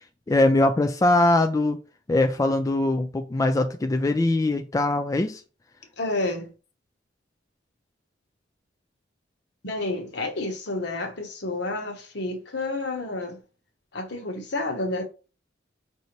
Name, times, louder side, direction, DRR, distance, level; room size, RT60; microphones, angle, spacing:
voice 1, 0.3-1.8 2.1-5.4, left 2 dB, 20° left, 0.3 m, -22 dB
voice 2, 6.0-6.5 9.6-13.4 13.9-15.0, left 2 dB, 65° left, 1.1 m, -30 dB
5.5 x 2.7 x 3.0 m
head